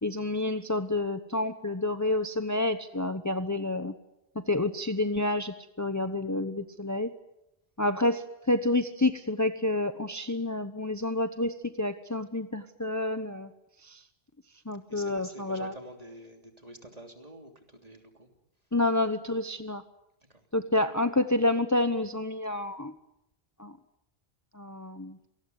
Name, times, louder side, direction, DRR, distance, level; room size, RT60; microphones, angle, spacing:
voice 1, 0.0-3.9 4.3-7.1 7.8-13.5 13.8-14.0 14.6-15.7 18.7-19.8 20.5-22.9 23.6-23.8 24.5-25.2, left 2 dB, 20° left, 10 dB, 1.0 m, -29 dB
voice 2, 14.9-18.3 20.3-20.4, right 1 dB, 40° right, 5 dB, 3.3 m, -47 dB
27.5 x 19.5 x 9.4 m, 0.85 s
omnidirectional pair, 1.0 m